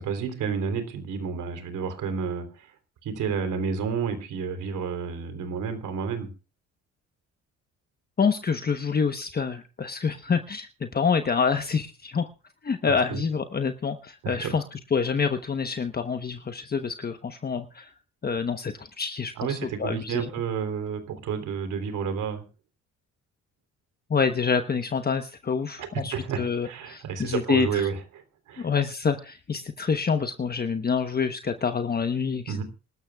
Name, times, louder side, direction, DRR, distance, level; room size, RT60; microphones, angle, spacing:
voice 1, 0.0-2.7 3.0-6.3 12.8-13.2 14.2-14.6 19.4-22.4 25.8-28.7 32.5-32.6, right 6 dB, 85° right, 8 dB, 3.6 m, -31 dB
voice 2, 8.2-12.3 12.6-17.9 18.2-20.3 24.1-27.9 28.6-32.6, left 5 dB, 30° left, 7 dB, 1.1 m, -27 dB
26.5 x 13.0 x 2.4 m, 0.34 s
cardioid pair, 90°, 30 cm